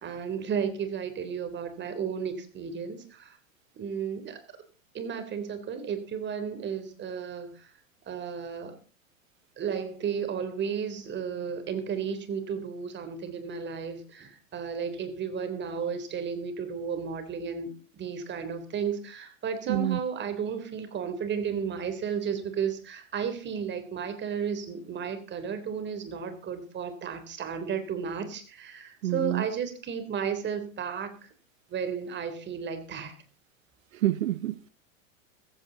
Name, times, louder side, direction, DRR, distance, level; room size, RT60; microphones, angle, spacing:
voice 1, 0.0-3.4 3.8-4.4 4.9-7.7 8.1-8.8 9.6-31.3 31.7-33.2, right 7 dB, 30° right, 3.6 m, -33 dB
voice 2, 19.7-20.0 29.0-29.5 33.9-34.7, right 14 dB, 80° right, 1.0 m, -27 dB
15.5 x 15.5 x 4.1 m
hypercardioid pair, 115°, 39 cm